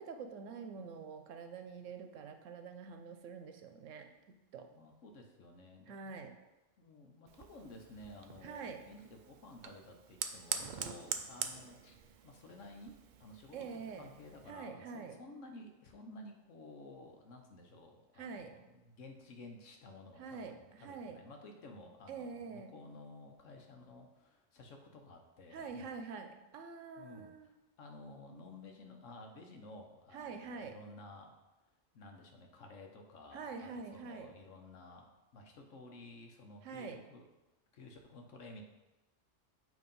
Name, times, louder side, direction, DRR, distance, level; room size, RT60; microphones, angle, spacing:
voice 1, 0.0-4.7 5.9-6.3 8.4-8.8 13.5-14.1 14.5-15.2 18.2-18.6 20.2-21.2 22.1-22.7 25.5-27.5 30.1-30.8 33.3-34.3 36.6-37.0, right 5 dB, 80° right, 6 dB, 1.0 m, -46 dB
voice 2, 4.7-6.3 6.8-11.9 12.2-25.9 27.0-27.5 27.8-31.4 31.9-37.3 37.7-38.6, left 2 dB, 80° left, 3 dB, 1.2 m, -53 dB
Fire, 7.3-14.5, right 7 dB, 60° right, 0.5 m, -45 dB
7.9 x 3.0 x 5.3 m, 1.1 s
omnidirectional pair, 1.3 m